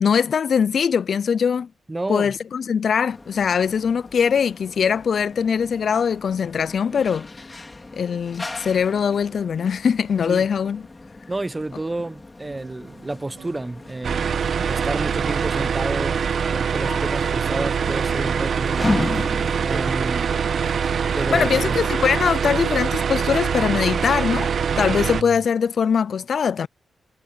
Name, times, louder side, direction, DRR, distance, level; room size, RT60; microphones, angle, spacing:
voice 1, 0.0-1.7 2.1-7.3 8.0-10.8 21.3-24.5 24.8-26.7, left 7 dB, 65° left, 0.4 m, -21 dB
voice 2, 1.9-2.3 10.3-10.5 11.3-14.3 14.7-16.2 16.5-19.4 19.6-20.4 21.1-21.8, right 2 dB, 20° right, 0.9 m, -30 dB
sound 1, 3.1-22.8, left 2 dB, 25° left, 3.6 m, -36 dB
sound 2, 12.4-25.5, right 8 dB, 80° right, 3.9 m, -45 dB
sound 3, 14.0-25.2, right 6 dB, 65° right, 1.2 m, -23 dB
wide cardioid pair, 115°, 0 cm